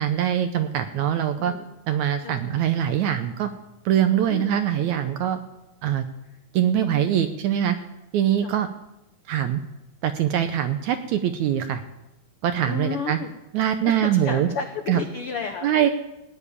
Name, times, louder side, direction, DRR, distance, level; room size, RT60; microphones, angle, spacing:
voice 1, 0.0-1.5 1.9-3.5 3.9-5.4 5.8-6.1 6.5-7.8 8.1-8.7 9.3-9.6 10.0-11.8 12.4-13.2 13.5-14.5 14.9-15.0 15.6-15.9, right 10 dB, 75° right, 8 dB, 1.8 m, -23 dB
voice 2, 2.2-2.6 4.3-4.6 8.4-8.5 12.7-13.3 13.8-15.9, left 6 dB, 90° left, 5 dB, 1.2 m, -33 dB
17.5 x 7.1 x 9.9 m, 0.92 s
omnidirectional pair, 4.0 m